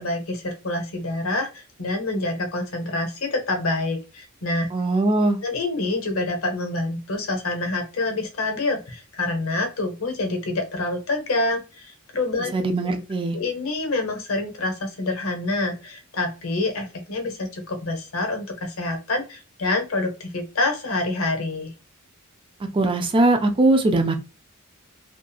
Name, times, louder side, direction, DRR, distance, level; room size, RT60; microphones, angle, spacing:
voice 1, 0.0-4.7 5.4-12.5 13.3-21.7, left 2 dB, 70° left, 4 dB, 0.7 m, -27 dB
voice 2, 4.7-5.4 12.5-13.4 22.7-24.1, right 2 dB, 25° right, 6 dB, 0.4 m, -20 dB
2.7 x 2.3 x 2.3 m, 0.31 s
head